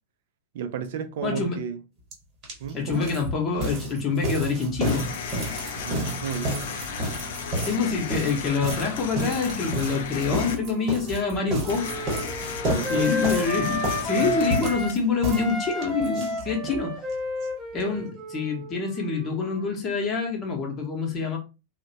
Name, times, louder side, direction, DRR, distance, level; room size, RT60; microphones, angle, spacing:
voice 1, 0.5-1.8 2.6-3.0 5.7-6.6 12.6-13.1 14.2-14.4 17.9-18.0, right 7 dB, 55° right, 0.4 m, -32 dB
voice 2, 1.2-1.6 2.7-5.1 7.6-11.9 12.9-17.0 17.7-21.4, left 4 dB, 30° left, 0.8 m, -26 dB
Footsteps - Stairs, 2.1-2.2 2.4-16.8 17.1-17.2 17.4-17.5 17.8-17.9, right 1 dB, 30° right, 1.2 m, -31 dB
sound 1, 4.8-10.6 11.7-15.3, left 5 dB, 55° left, 0.4 m, -35 dB
Wind instrument woodwind instrument, 10.4-14.9 15.3-19.8, left 2 dB, 10° right, 0.8 m, -32 dB
2.8 x 2.0 x 2.7 m
figure-of-eight pair, 90°, 0 cm